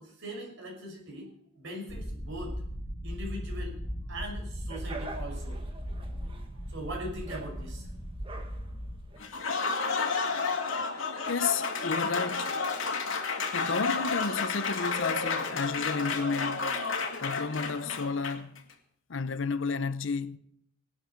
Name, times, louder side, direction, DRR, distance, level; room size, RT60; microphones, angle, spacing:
voice 1, 0.0-2.6 3.0-3.8 4.1-5.6 6.1-6.3 6.7-7.9, equal, 65° right, 6.1 m, -40 dB
sound 1, 1.9-9.0, equal, 10° left, 5.7 m, -38 dB
sound 2, 4.7-9.7, right 3 dB, 25° right, 1.4 m, -46 dB
Applause, 9.2-18.6, left 4 dB, 90° left, 2.1 m, -31 dB
voice 2, 11.3-12.6 13.5-16.8 17.2-18.6 19.1-20.4, left 4 dB, 65° left, 0.7 m, -32 dB
19.0 x 12.0 x 4.5 m
head